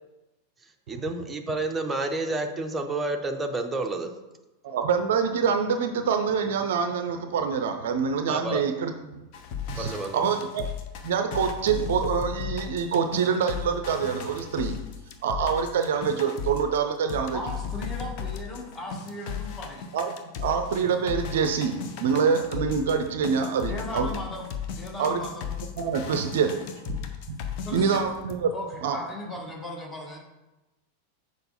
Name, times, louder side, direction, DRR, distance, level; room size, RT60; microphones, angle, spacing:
voice 1, 0.9-4.1 8.3-8.7 9.8-10.2, right 2 dB, 15° right, 4 dB, 0.8 m, -30 dB
voice 2, 4.6-9.2 9.7-10.6 11.0-14.8 15.2-17.4 19.9-20.1 20.4-24.1 25.0-25.2 25.8-27.0 27.3-27.4 27.7-28.5 28.8-29.0, right 6 dB, 55° right, 7 dB, 0.5 m, -26 dB
sound 1, 9.3-16.8 17.1-28.3, left 7 dB, 45° left, 0.7 m, -36 dB
voice 3, 17.3-19.9 23.6-25.5 27.6-28.1 28.5-30.2, left 1 dB, 15° left, -1 dB, 1.6 m, -37 dB
6.7 x 4.7 x 4.1 m, 1.0 s
figure-of-eight pair, 90°, 0 cm